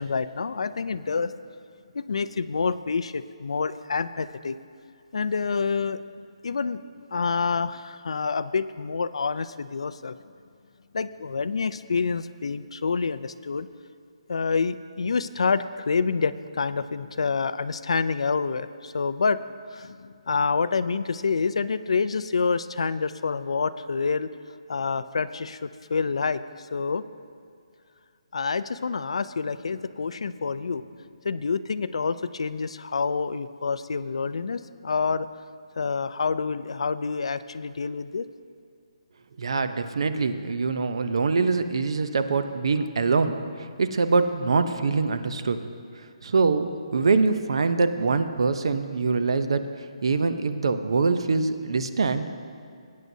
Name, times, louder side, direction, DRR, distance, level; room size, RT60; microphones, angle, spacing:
voice 1, 0.0-1.3 1.9-4.6 5.1-6.8 7.1-10.2 10.9-13.7 14.3-19.4 19.7-24.3 24.7-27.0 28.3-30.8 31.2-35.3 35.8-38.3, left 5 dB, 65° left, 14 dB, 0.4 m, -27 dB
voice 2, 39.4-45.6 46.2-49.6 50.0-52.3, right 4 dB, 55° right, 10 dB, 0.6 m, -24 dB
19.5 x 9.3 x 2.7 m, 2.4 s
hypercardioid pair, 175°, 3 cm